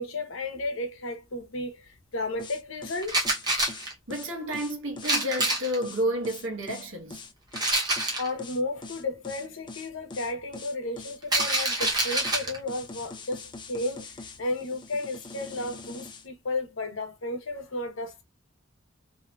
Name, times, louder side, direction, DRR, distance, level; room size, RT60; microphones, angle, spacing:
voice 1, 0.0-3.2 8.2-18.2, left 2 dB, 90° left, 0.8 m, -33 dB
sound 1, 2.4-16.3, left 3 dB, 25° left, 0.4 m, -43 dB
sound 2, 3.0-3.9 5.0-5.8 7.5-8.3 11.2-12.6, right 1 dB, 20° right, 0.7 m, -26 dB
voice 2, 4.1-7.2, equal, 85° right, 1.0 m, -30 dB
2.7 x 2.6 x 2.2 m
head